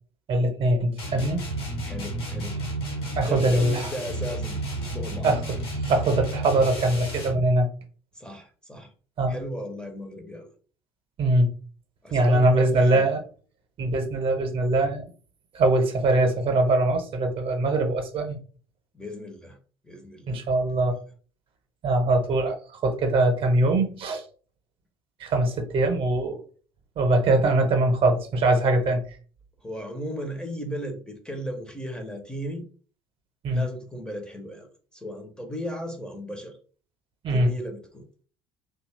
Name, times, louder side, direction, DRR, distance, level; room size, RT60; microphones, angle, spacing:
voice 1, 0.3-1.4 3.2-3.9 5.2-5.4 5.8-7.7 9.2-9.4 11.2-11.5 12.1-13.2 13.8-15.1 15.5-18.4 20.3-21.0 21.8-24.2 25.2-26.4 27.0-29.0 33.4-33.6 37.2-37.5, right 2 dB, 40° right, 5 dB, 0.8 m, -22 dB
sound 1, 1.0-7.5, right 1 dB, 75° left, 1.1 m, -32 dB
voice 2, 1.8-2.6 3.1-5.3 8.1-8.9 9.3-10.5 12.0-13.0 18.9-19.6 19.8-20.4 29.6-32.7 33.5-36.6 37.3-38.1, equal, 5° left, 4 dB, 0.6 m, -36 dB
2.7 x 2.3 x 3.2 m, 0.41 s
figure-of-eight pair, 60°, 13 cm